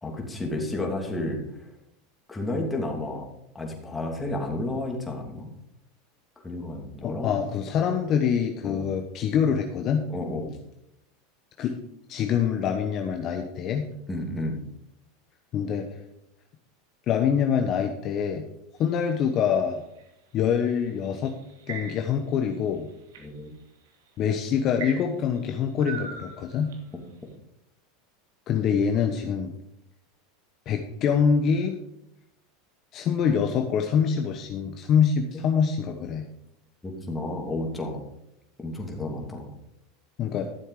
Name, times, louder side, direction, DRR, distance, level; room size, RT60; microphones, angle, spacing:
voice 1, 0.0-1.4 2.3-3.3 3.5-5.5 6.4-7.3 8.6-8.9 10.1-10.5 14.1-14.6 23.2-23.5 35.3-35.4 36.8-38.0 38.6-39.5, left 2 dB, 15° left, 0 dB, 2.7 m, -31 dB
voice 2, 7.0-10.0 11.6-11.8 12.1-13.9 15.5-15.9 17.1-18.4 18.8-19.8 20.3-21.4 21.7-22.9 24.2-26.7 28.5-29.5 30.7-31.8 32.9-36.3 40.2-40.5, left 7 dB, 45° left, 5 dB, 1.0 m, -25 dB
sound 1, 18.8-20.1 21.0-22.3 22.7-23.2 23.9-24.1 24.8-27.0, right 5 dB, 85° right, 2.4 m, -40 dB
13.0 x 7.2 x 4.9 m, 0.81 s
supercardioid pair, 120°, 0 cm